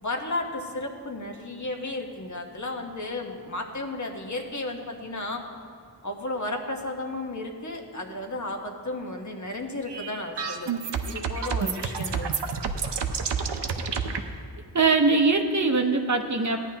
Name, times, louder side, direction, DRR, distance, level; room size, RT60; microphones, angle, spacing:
voice 1, 0.0-5.4 6.0-10.8 11.1-12.3, left 2 dB, 45° left, 2 dB, 1.1 m, -33 dB
sound 1, 9.9-14.2, right 6 dB, 80° right, 0.7 m, -29 dB
voice 2, 14.7-16.6, right 3 dB, 45° right, 5 dB, 0.7 m, -22 dB
15.0 x 10.0 x 2.9 m, 2.1 s
wide cardioid pair, 90°, 41 cm